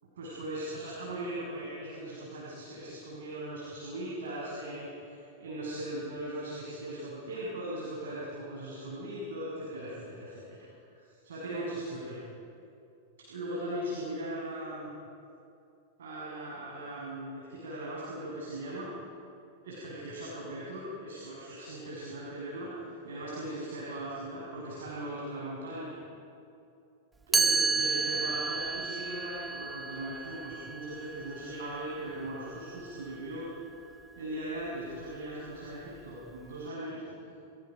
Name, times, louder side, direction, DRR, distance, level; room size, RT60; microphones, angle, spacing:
voice 1, 0.2-12.2 13.3-14.9 16.0-18.9 19.6-22.7 23.0-26.0 27.3-33.5 34.2-37.3, right 1 dB, 70° right, -6 dB, 6.7 m, -39 dB
Chime, 27.3-33.2, right 4 dB, 15° right, 0.5 m, -32 dB
29.5 x 24.0 x 5.3 m, 2.7 s
hypercardioid pair, 95°, 0 cm